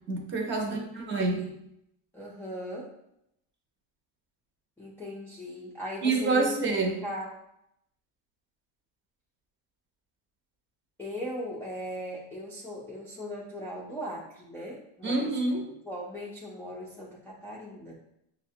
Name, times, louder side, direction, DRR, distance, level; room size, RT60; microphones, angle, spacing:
voice 1, 0.1-1.5 6.0-7.0 15.0-15.7, right 3 dB, 30° right, 2 dB, 0.6 m, -27 dB
voice 2, 0.6-1.5 2.1-2.9 4.8-6.5 7.0-7.3 11.0-15.3 15.8-17.9, left 1 dB, 5° left, -7 dB, 0.3 m, -38 dB
6.1 x 2.1 x 2.7 m, 0.79 s
cardioid pair, 140°, 40 cm